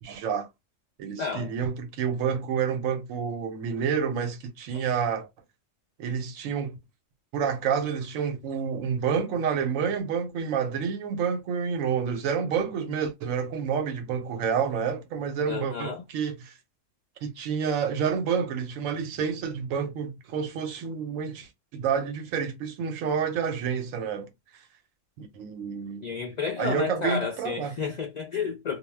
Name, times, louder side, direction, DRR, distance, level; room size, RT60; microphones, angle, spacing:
voice 1, 0.0-0.5 1.0-5.3 6.0-6.8 7.3-16.5 17.2-24.3 25.2-26.1 26.6-27.7, right 7 dB, 85° right, 1.0 m, -29 dB
voice 2, 1.2-1.5 4.7-4.9 15.5-16.0 26.0-28.8, left 5 dB, 70° left, 0.4 m, -31 dB
2.3 x 2.0 x 3.2 m
omnidirectional pair, 1.3 m